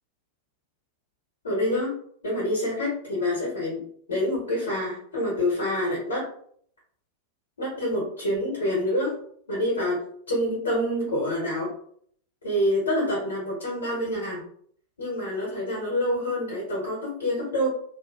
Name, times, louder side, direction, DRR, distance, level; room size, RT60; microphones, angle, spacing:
voice 1, 1.4-2.0 2.2-6.3 7.6-9.2 9.5-11.7 12.4-14.4 15.0-17.7, left 1 dB, 65° left, -5 dB, 1.1 m, -27 dB
2.8 x 2.5 x 2.3 m, 0.63 s
figure-of-eight pair, 90°, 0 cm